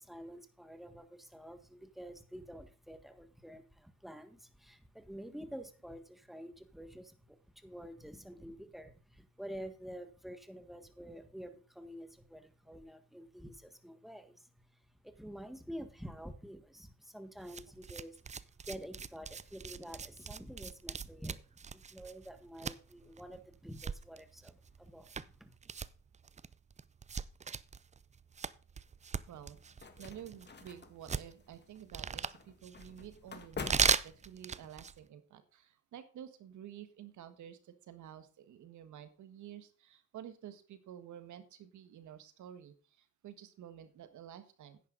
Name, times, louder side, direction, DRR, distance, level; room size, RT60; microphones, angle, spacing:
voice 1, 0.0-21.4 21.7-25.6, equal, ahead, 9 dB, 1.5 m, -49 dB
sound 1, 17.4-35.0, right 6 dB, 25° right, 0.5 m, -39 dB
sound 2, 29.3-34.7, left 5 dB, 35° left, 1.7 m, -48 dB
voice 2, 29.3-44.8, right 10 dB, 75° right, 11 dB, 1.5 m, -51 dB
10.0 x 9.8 x 3.9 m, 0.38 s
cardioid pair, 90°, 30 cm